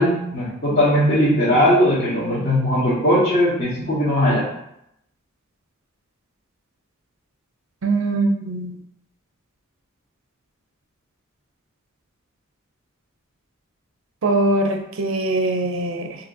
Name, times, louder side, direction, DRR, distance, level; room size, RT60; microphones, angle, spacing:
voice 1, 0.0-4.5, equal, 40° left, -11 dB, 1.5 m, -19 dB
voice 2, 7.8-8.8 14.2-16.2, right 2 dB, 60° right, 4 dB, 0.5 m, -22 dB
6.8 x 2.7 x 2.7 m, 0.78 s
head